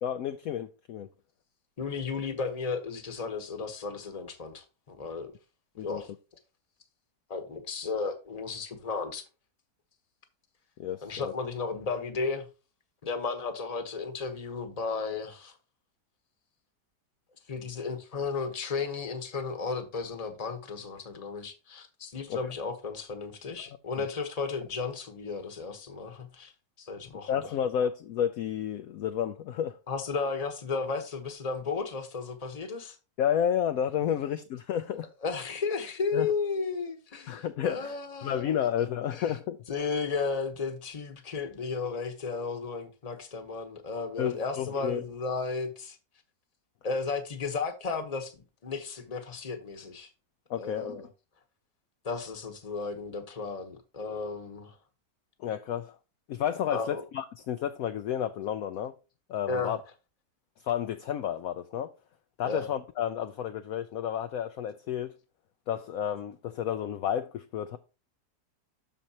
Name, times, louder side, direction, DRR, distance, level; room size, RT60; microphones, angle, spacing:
voice 1, 0.0-1.1 5.8-6.0 10.8-11.3 22.3-22.4 27.3-29.8 33.2-35.1 36.1-36.3 37.3-38.0 38.2-39.6 44.2-45.0 50.5-51.0 55.4-56.0 56.3-58.9 59.3-59.8 60.6-61.9 62.4-65.2 65.7-67.8, left 9 dB, 70° left, 0.9 m, -31 dB
voice 2, 1.8-5.3 5.8-6.1 7.3-9.2 11.0-12.5 13.0-15.5 17.5-26.5 26.8-27.4 29.9-33.0 35.2-38.4 39.1-39.4 39.7-46.0 46.8-50.1 50.6-51.1 52.0-54.8 56.7-57.0 59.5-59.7 62.4-62.7, left 4 dB, 25° left, 1.0 m, -34 dB
13.0 x 4.5 x 2.8 m
omnidirectional pair, 1.8 m